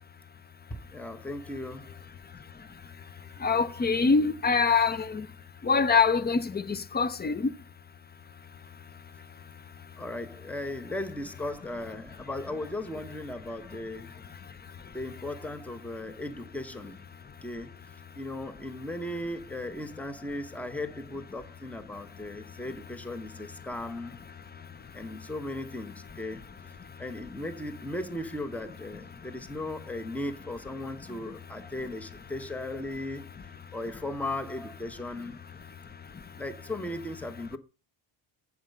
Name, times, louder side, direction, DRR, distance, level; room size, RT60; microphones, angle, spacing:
voice 1, 0.9-2.0 10.0-14.2 14.9-17.0 17.4-17.8 18.1-24.2 24.9-26.4 27.0-33.3 33.7-35.4 36.4-37.6, left 1 dB, 5° left, 0.9 m, -37 dB
voice 2, 3.4-5.2 5.7-6.4 6.7-7.4, left 5 dB, 20° left, 0.4 m, -24 dB
7.4 x 7.4 x 5.3 m
cardioid pair, 125°, 50 cm